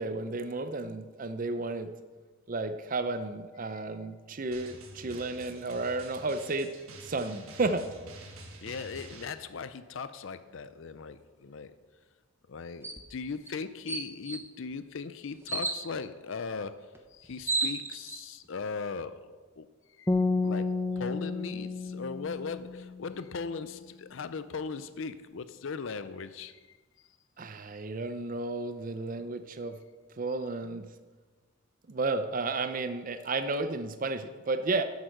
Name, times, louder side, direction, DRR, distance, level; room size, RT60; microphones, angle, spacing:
voice 1, 0.0-1.9 2.5-6.7 7.0-7.9 27.4-29.7 30.2-30.9 31.9-34.8, right 3 dB, 40° right, 0.5 m, -32 dB
Drum, 4.5-9.3, right 2 dB, 85° right, 1.7 m, -48 dB
voice 2, 8.6-11.7 12.5-19.7 20.0-20.1 20.4-26.8, left 5 dB, 65° left, 0.5 m, -39 dB
sound 1, 12.8-13.0 13.5-13.6 13.9-14.4 15.5-15.8 16.9-17.0 17.2-18.2, right 3 dB, 10° right, 0.9 m, -31 dB
sound 2, 20.1-23.3, left 3 dB, 15° left, 0.6 m, -31 dB
11.0 x 7.9 x 6.5 m
head